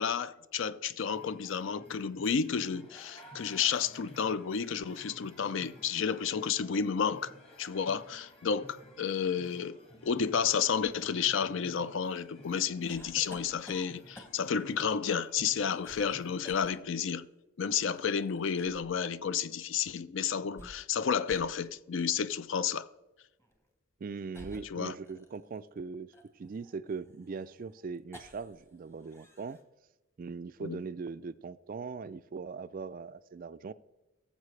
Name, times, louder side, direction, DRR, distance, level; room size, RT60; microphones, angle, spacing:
voice 1, 0.0-7.3 7.6-9.8 10.0-17.3 17.6-22.9 24.7-25.0 30.6-30.8, left 7 dB, 60° left, 0.4 m, -31 dB
sound 1, 1.1-16.8, equal, 25° left, 1.6 m, -55 dB
sound 2, 12.9-14.6 15.4-16.2 16.4-16.8 17.9-18.9 20.4-21.0 21.3-21.5 22.1-22.3 23.4-23.6 24.3-25.6 26.1-28.6 28.9-29.6, equal, 10° left, 1.0 m, -52 dB
voice 2, 24.0-29.6 30.2-33.7, right 4 dB, 40° right, 0.3 m, -40 dB
17.0 x 7.4 x 3.2 m
head